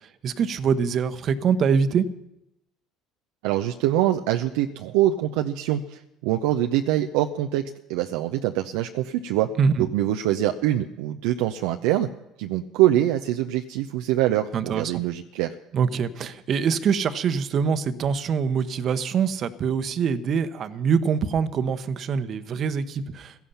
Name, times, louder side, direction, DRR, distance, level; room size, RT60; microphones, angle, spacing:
voice 1, 0.2-2.1 9.6-9.9 14.5-14.9 15.7-23.5, right 6 dB, 45° right, 11 dB, 1.1 m, -24 dB
voice 2, 3.4-12.1 12.4-15.5, right 13 dB, 70° right, 5 dB, 0.6 m, -24 dB
16.5 x 14.0 x 5.7 m, 0.87 s
hypercardioid pair, 60°, 0 cm